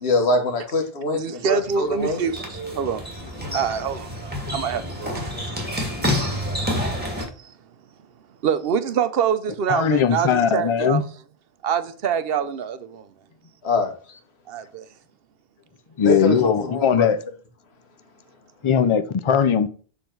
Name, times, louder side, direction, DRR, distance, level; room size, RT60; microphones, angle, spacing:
voice 1, 0.0-2.2 13.6-14.2 16.0-17.1, left 2 dB, 90° left, 1.7 m, -24 dB
voice 2, 1.1-5.5 6.4-6.5 7.0-7.6 8.4-11.0 11.6-13.1 14.5-14.9, right 7 dB, 70° right, 0.8 m, -26 dB
sound 1, 1.6-7.2, equal, 10° right, 1.8 m, -28 dB
voice 3, 9.7-11.0 16.0-17.2 18.6-19.7, left 7 dB, 40° left, 0.5 m, -19 dB
7.2 x 4.0 x 4.5 m
omnidirectional pair, 1.0 m